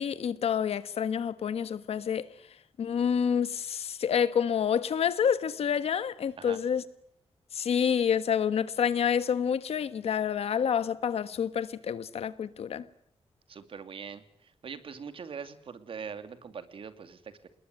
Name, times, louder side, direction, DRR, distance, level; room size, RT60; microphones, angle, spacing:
voice 1, 0.0-2.3 2.8-6.8 7.5-12.8, left 8 dB, 85° left, 1.4 m, -28 dB
voice 2, 13.5-17.5, right 6 dB, 60° right, 2.6 m, -42 dB
27.5 x 21.0 x 9.5 m
wide cardioid pair, 135°, 10 cm